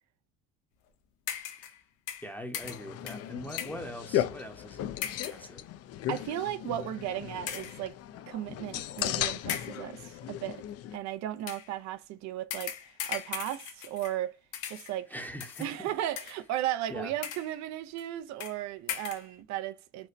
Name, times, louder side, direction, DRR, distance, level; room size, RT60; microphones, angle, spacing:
sound 1, 1.3-1.8 2.1-3.9 5.0-5.5 6.2-6.3 7.5-7.9 9.0-9.1 9.5-9.9 11.4-11.7 12.5-14.3 14.5-15.0 15.4-15.7 16.2-16.6 17.1-17.6 18.0-18.1 18.4-18.6 18.9-19.3, left 10 dB, 85° left, 0.8 m, -39 dB
voice 1, 2.2-5.7 15.1-15.9 16.9-17.1, equal, 5° left, 0.7 m, -42 dB
sound 2, 2.6-11.0, left 12 dB, 55° left, 0.4 m, -36 dB
voice 2, 6.1-8.0 8.3-10.6 10.9-14.4 14.7-15.1 15.6-20.1, right 12 dB, 65° right, 0.5 m, -35 dB
4.3 x 2.1 x 2.5 m
cardioid pair, 95°, 30 cm